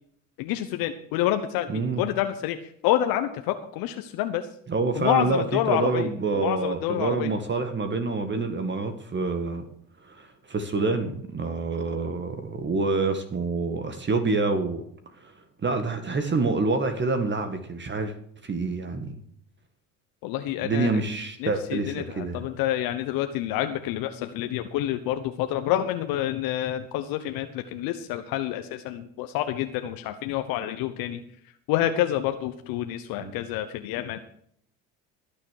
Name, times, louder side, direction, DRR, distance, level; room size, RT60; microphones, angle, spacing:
voice 1, 0.4-2.6 2.8-4.4 4.9-6.1 6.4-7.3 20.2-20.9 21.4-31.2 31.7-34.2, left 12 dB, 70° left, 8 dB, 1.2 m, -28 dB
voice 2, 1.7-2.0 4.7-9.6 10.0-14.8 15.2-15.3 15.6-18.1 18.4-19.2 20.6-22.4 33.2-33.3, right 3 dB, 30° right, 8 dB, 1.9 m, -27 dB
17.5 x 6.9 x 6.6 m, 0.67 s
supercardioid pair, 80°, 37 cm